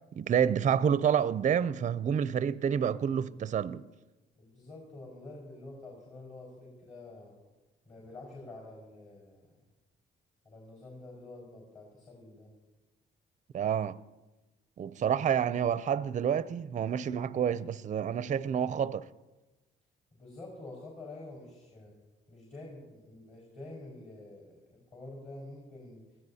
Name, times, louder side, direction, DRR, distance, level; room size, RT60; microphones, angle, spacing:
voice 1, 0.1-3.9 13.5-14.0 14.8-19.1, right 8 dB, 40° right, 0.4 m, -28 dB
voice 2, 4.4-7.3 7.9-9.5 10.4-12.5 20.1-21.9 22.3-26.0, left 2 dB, 40° left, 4.6 m, -48 dB
22.0 x 15.5 x 2.8 m
cardioid pair, 90°, 20 cm